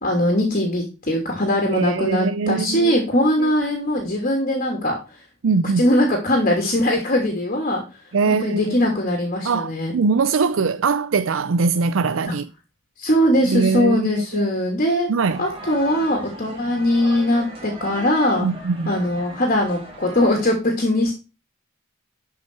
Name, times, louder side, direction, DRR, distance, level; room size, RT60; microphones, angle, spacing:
voice 1, 0.0-5.2 5.6-10.0 12.3-12.4 13.0-15.1 15.4-18.5 18.9-21.1, left 1 dB, 45° left, 2.8 m, -21 dB
voice 2, 1.7-2.9 3.4-3.5 5.4-5.8 8.1-8.7 9.4-12.4 13.5-14.5 15.1-15.4 18.4-18.9, right 4 dB, 85° right, 0.5 m, -22 dB
sound 1, 15.2-20.6, right 2 dB, 30° right, 3.8 m, -38 dB
12.0 x 5.7 x 4.7 m
head